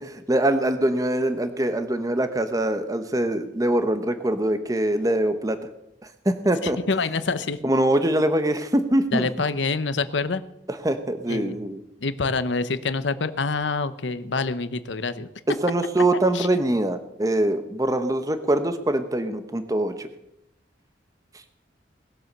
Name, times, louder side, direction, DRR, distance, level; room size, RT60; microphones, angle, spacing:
voice 1, 0.0-5.6 6.2-6.8 7.6-9.3 10.8-11.8 15.6-20.1, right 1 dB, 20° right, 9 dB, 0.9 m, -23 dB
voice 2, 6.6-7.6 9.1-10.4 11.3-11.6 12.0-15.3 16.3-16.5, left 4 dB, 85° left, 13 dB, 0.9 m, -26 dB
19.5 x 7.8 x 6.7 m, 0.84 s
head